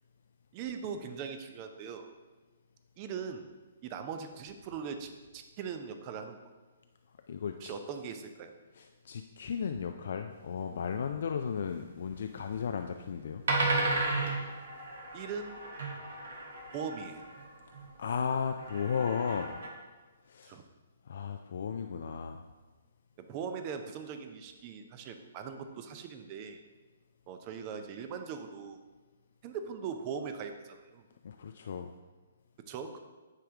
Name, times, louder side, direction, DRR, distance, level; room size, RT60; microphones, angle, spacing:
voice 1, 0.5-2.1 3.0-3.5 3.8-6.4 7.6-8.5 15.1-15.6 16.7-17.3 20.4-20.6 23.2-26.6 27.3-28.8 29.4-31.0 32.7-33.0, right 6 dB, 35° right, 7 dB, 0.6 m, -40 dB
voice 2, 7.3-7.7 8.7-13.4 18.0-19.6 20.2-20.6 21.0-22.4 31.2-31.9, left 6 dB, 60° left, 6 dB, 0.3 m, -35 dB
sound 1, 10.8-10.9 12.3-12.6 13.1-13.2 13.5-17.9 18.6-19.7, right 2 dB, 65° right, 1.3 m, -34 dB
9.2 x 3.4 x 3.6 m, 1.3 s
figure-of-eight pair, 130°, 0 cm